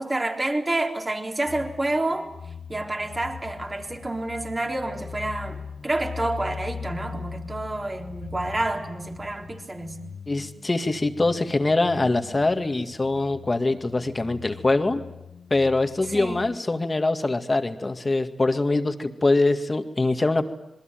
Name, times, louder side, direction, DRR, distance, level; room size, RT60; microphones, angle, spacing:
voice 1, 0.0-2.3 2.7-10.0 16.1-16.4, right 2 dB, 30° right, 3 dB, 3.9 m, -29 dB
sound 1, 1.5-16.5, left 6 dB, 65° left, 0.9 m, -41 dB
voice 2, 10.3-15.0 15.5-20.5, left 2 dB, 30° left, 8 dB, 2.1 m, -23 dB
27.0 x 21.5 x 9.2 m, 0.86 s
cardioid pair, 60°, 0 cm